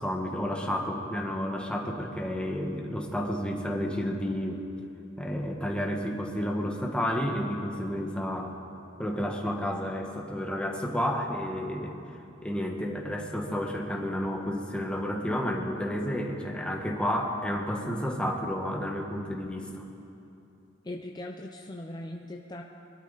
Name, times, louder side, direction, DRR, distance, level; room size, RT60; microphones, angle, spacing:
voice 1, 0.0-4.6 5.2-8.6 9.0-12.0 12.4-19.9, equal, 5° left, 1 dB, 1.4 m, -31 dB
voice 2, 20.8-22.6, left 1 dB, 20° left, 1 dB, 0.7 m, -39 dB
22.0 x 12.5 x 4.1 m, 2.8 s
head